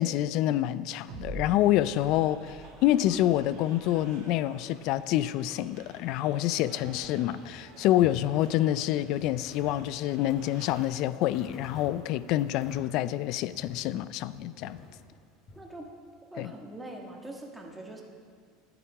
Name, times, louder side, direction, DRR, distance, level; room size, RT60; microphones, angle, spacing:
voice 1, 0.0-14.8 16.4-16.5, left 13 dB, 60° left, 16 dB, 0.3 m, -27 dB
sound 1, 1.1-4.4, right 2 dB, 40° right, 1.7 m, -44 dB
sound 2, 1.6-10.8, right 3 dB, 75° right, 2.0 m, -52 dB
sound 3, 5.7-6.4 6.8-7.6 7.9-8.6 9.0-13.9 14.3-15.6, left 2 dB, 35° left, 2.7 m, -51 dB
voice 2, 15.5-15.9 16.3-18.0, right 1 dB, 5° right, 0 dB, 1.5 m, -43 dB
11.5 x 8.7 x 4.8 m, 2.1 s
supercardioid pair, 125°, 0 cm